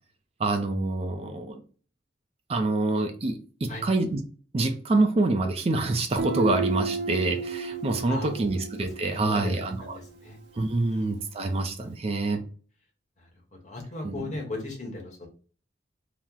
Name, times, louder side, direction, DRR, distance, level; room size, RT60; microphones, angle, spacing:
voice 1, 0.4-1.6 2.5-4.2 4.5-10.0 10.6-12.4 14.0-14.4, right 2 dB, 35° right, 5 dB, 0.4 m, -26 dB
Guitar, 6.2-9.8, right 3 dB, 85° right, 0.6 m, -32 dB
voice 2, 8.1-8.5 9.2-9.6 9.9-10.4 10.9-11.1 13.6-15.3, left 2 dB, 40° left, 0 dB, 0.9 m, -36 dB
2.9 x 2.0 x 3.6 m, 0.40 s
head